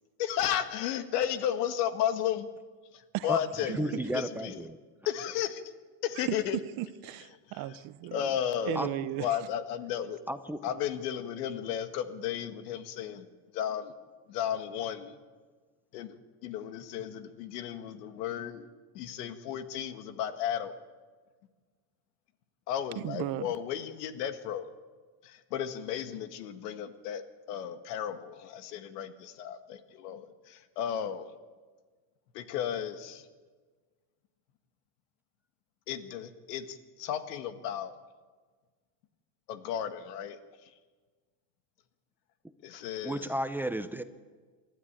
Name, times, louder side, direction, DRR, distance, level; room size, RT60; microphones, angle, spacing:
voice 1, 0.2-2.5 2.9-4.7 5.1-5.7 6.0-6.6 7.5-7.8 8.1-10.2 10.6-13.3 13.5-14.0 14.3-15.2 15.9-18.7 18.9-20.7 22.7-24.7 25.2-27.2 27.5-31.3 32.3-33.3 35.9-37.9 39.5-40.7 42.6-43.3, left 9 dB, 90° left, 9 dB, 1.8 m, -34 dB
voice 2, 3.8-4.7 8.8-8.9 10.3-10.6 43.0-44.0, right 1 dB, 5° right, 10 dB, 0.6 m, -32 dB
voice 3, 6.8-8.4 8.7-9.4 23.0-23.5, right 15 dB, 50° right, 15 dB, 0.8 m, -36 dB
28.5 x 12.5 x 8.9 m, 1.5 s
cardioid pair, 140°, 46 cm